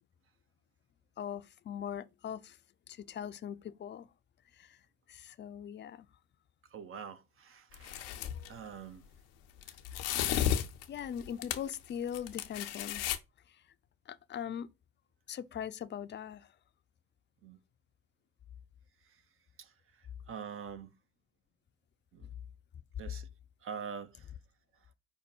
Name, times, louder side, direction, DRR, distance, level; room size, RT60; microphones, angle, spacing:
voice 1, 1.2-2.6 2.9-4.1 4.5-4.8 5.1-6.1 8.2-8.6 10.9-13.0 13.5-13.6 14.1-14.7 15.3-16.5, left 9 dB, 35° left, 0.5 m, -41 dB
voice 2, 6.7-8.1 8.5-9.0 17.4-17.6 19.6-19.7 20.3-20.9 22.1-22.3 23.0-23.3 23.6-24.2, right 7 dB, 45° right, 0.7 m, -44 dB
sound 1, 7.7-8.5 9.6-11.7 12.1-13.2, left 10 dB, 80° left, 0.6 m, -33 dB
5.3 x 2.2 x 4.4 m
hypercardioid pair, 50°, 30 cm